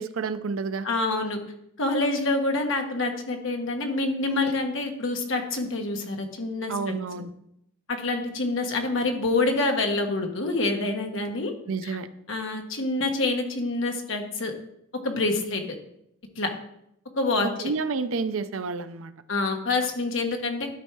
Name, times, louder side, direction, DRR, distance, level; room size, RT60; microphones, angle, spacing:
voice 1, 0.0-0.9 6.7-7.3 11.7-12.1 17.4-19.1, right 4 dB, 85° right, 12 dB, 0.5 m, -30 dB
voice 2, 0.8-1.4 1.8-6.9 7.9-11.5 11.8-12.0 12.3-14.5 15.0-15.6 16.4-16.5 17.2-17.7 19.3-20.7, left 2 dB, 70° left, 3 dB, 1.3 m, -26 dB
12.0 x 4.5 x 4.7 m, 0.77 s
head